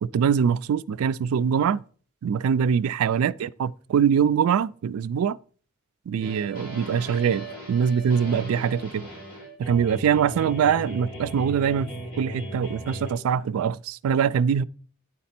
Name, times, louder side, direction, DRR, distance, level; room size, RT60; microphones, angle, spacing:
voice 1, 0.0-1.8 2.2-5.4 6.1-9.1 9.6-11.9 12.2-14.6, right 7 dB, 80° right, 0.3 m, -23 dB
sound 1, 6.2-13.1, equal, 45° left, 3.9 m, -38 dB
9.8 x 4.1 x 4.3 m
head